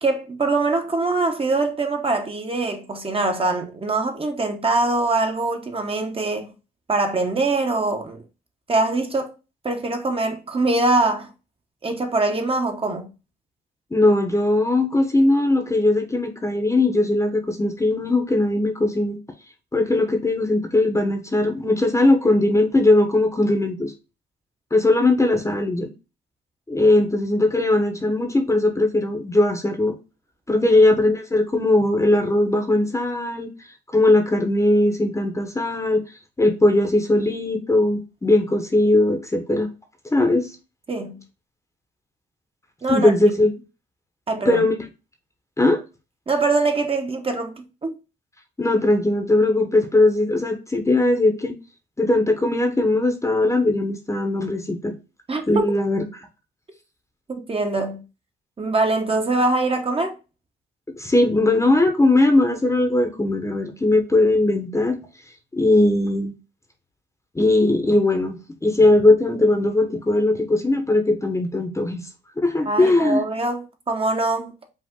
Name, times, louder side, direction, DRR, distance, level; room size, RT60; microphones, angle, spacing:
voice 1, 0.0-6.5 6.9-8.2 8.7-9.3 9.6-11.3 11.8-13.1 30.5-30.7 40.9-41.2 42.8-43.1 44.3-44.6 46.3-47.9 55.3-55.4 57.5-58.0 58.6-60.1 72.7-74.5, right 3 dB, 30° right, 1.0 m, -23 dB
voice 2, 13.9-19.2 19.7-23.9 24.7-25.9 26.7-29.9 30.5-33.5 33.9-36.0 36.4-39.7 40.1-40.5 42.9-43.5 44.4-44.7 45.6-45.8 48.6-51.5 52.0-54.9 55.5-56.0 61.0-65.0 65.5-66.3 67.3-72.0 72.4-73.2, left 2 dB, 15° left, 0.9 m, -19 dB
5.3 x 2.4 x 3.7 m
cardioid pair, 90°, 20 cm